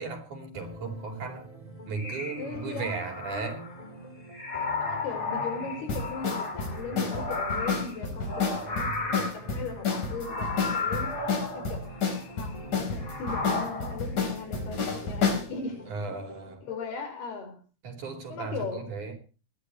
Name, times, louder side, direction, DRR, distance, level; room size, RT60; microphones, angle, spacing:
voice 1, 0.0-1.5 1.9-3.6 15.9-16.6 17.8-19.2, right 4 dB, 50° right, 5.7 m, -36 dB
sound 1, 0.5-16.5, equal, 10° left, 3.2 m, -45 dB
sound 2, 1.9-3.9 4.3-12.7 13.0-14.0, left 3 dB, 25° left, 3.8 m, -34 dB
voice 2, 2.4-3.0 3.3-3.5 3.8-3.9 4.8-11.9 12.4-15.8 16.6-17.6 18.3-18.9, left 5 dB, 75° left, 6.7 m, -38 dB
sound 3, 5.9-15.5, left 5 dB, 50° left, 5.5 m, -30 dB
22.0 x 17.5 x 3.1 m
omnidirectional pair, 4.6 m